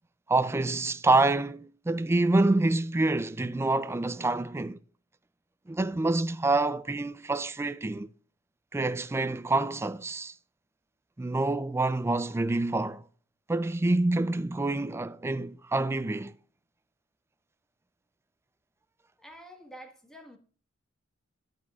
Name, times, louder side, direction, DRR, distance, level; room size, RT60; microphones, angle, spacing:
voice 1, 0.3-4.8 5.7-8.1 8.7-10.3 11.2-13.0 13.5-16.3, right 2 dB, 15° right, 0.3 m, -27 dB
voice 2, 19.2-20.4, equal, 5° left, 1.4 m, -48 dB
11.5 x 8.3 x 2.4 m
head